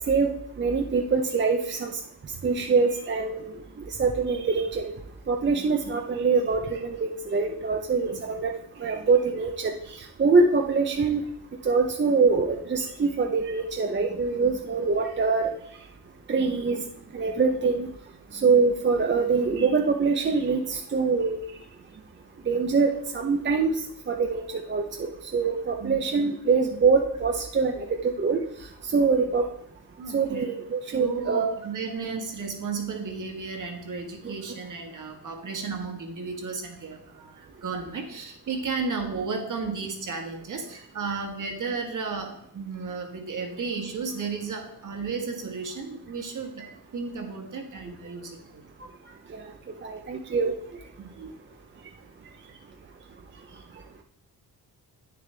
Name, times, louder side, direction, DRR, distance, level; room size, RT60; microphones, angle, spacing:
voice 1, 0.1-2.0 2.4-3.5 3.9-4.9 5.3-8.5 8.8-11.2 11.6-15.5 16.3-16.8 17.1-17.9 18.3-21.4 22.5-23.8 24.1-24.4 24.7-28.4 28.8-29.5 30.1-31.5 49.3-49.4 49.8-50.5 51.2-51.3, right 4 dB, 30° right, 2 dB, 0.6 m, -24 dB
voice 2, 30.0-30.4 30.9-48.6 51.0-51.1, right 4 dB, 55° right, 3 dB, 1.6 m, -34 dB
9.2 x 6.7 x 3.4 m, 0.74 s
cardioid pair, 110°, 38 cm